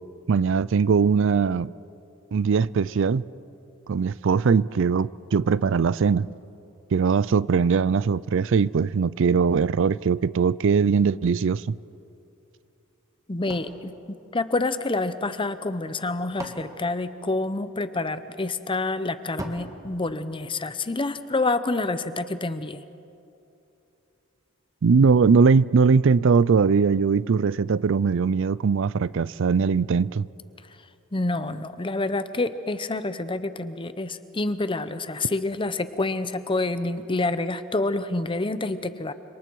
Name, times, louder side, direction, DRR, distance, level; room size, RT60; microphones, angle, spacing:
voice 1, 0.3-1.7 2.3-3.2 3.9-6.3 6.9-11.8 24.8-30.3, right 5 dB, 65° right, 0.4 m, -21 dB
voice 2, 13.3-22.8 31.1-39.1, left 2 dB, 25° left, 0.8 m, -28 dB
sound 1, 13.5-15.0 15.9-17.9 19.4-21.0, right 1 dB, 15° right, 1.9 m, -42 dB
29.5 x 26.5 x 4.7 m
head